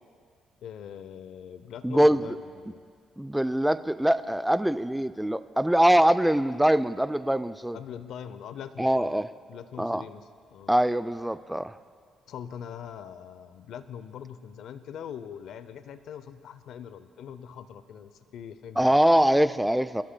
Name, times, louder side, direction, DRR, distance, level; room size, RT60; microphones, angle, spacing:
voice 1, 0.6-2.9 7.7-9.1 9.5-10.7 12.3-19.0, left 8 dB, 75° left, 12 dB, 0.6 m, -42 dB
voice 2, 1.8-2.4 3.2-7.8 8.8-9.3 9.8-10.0 10.7-11.8 18.8-20.0, right 1 dB, 5° right, 14 dB, 0.3 m, -23 dB
22.0 x 13.0 x 2.2 m, 2.1 s
cardioid pair, 90°, 0 cm